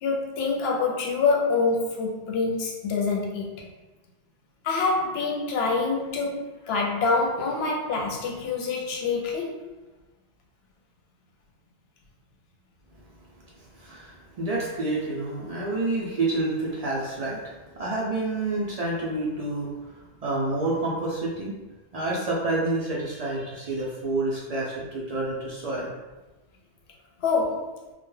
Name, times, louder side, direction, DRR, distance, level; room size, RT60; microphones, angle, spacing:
voice 1, 0.0-3.7 4.6-9.7 27.2-27.8, left 4 dB, 65° left, -1 dB, 0.8 m, -26 dB
voice 2, 13.6-21.6 21.9-25.9, right 2 dB, 60° right, -5 dB, 0.4 m, -29 dB
2.2 x 2.1 x 3.1 m, 1.1 s
omnidirectional pair, 1.2 m